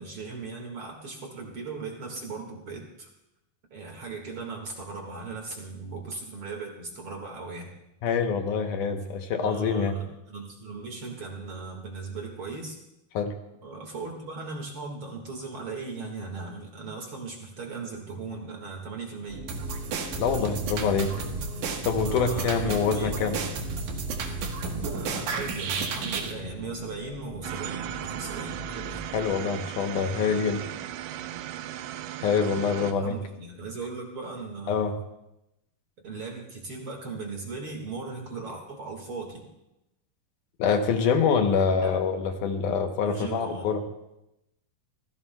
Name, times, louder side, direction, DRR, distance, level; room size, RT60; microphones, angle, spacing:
voice 1, 0.0-3.1 3.7-7.7 9.4-12.8 13.6-19.5 22.0-23.4 24.9-29.1 32.4-35.0 36.0-39.5 41.8-42.0 43.0-43.7, right 4 dB, 45° right, 1 dB, 2.2 m, -38 dB
voice 2, 8.0-10.0 13.2-13.3 20.2-21.1 21.9-23.4 29.1-30.6 32.2-33.2 34.7-35.0 40.6-43.8, left 6 dB, 75° left, 5 dB, 2.3 m, -25 dB
sound 1, 19.3-29.4, left 2 dB, 20° right, 4.1 m, -40 dB
sound 2, 19.5-26.3, right 5 dB, 70° right, 2.6 m, -32 dB
sound 3, 27.4-32.9, right 12 dB, 90° right, 2.4 m, -37 dB
25.5 x 15.5 x 2.2 m, 0.89 s
omnidirectional pair, 3.9 m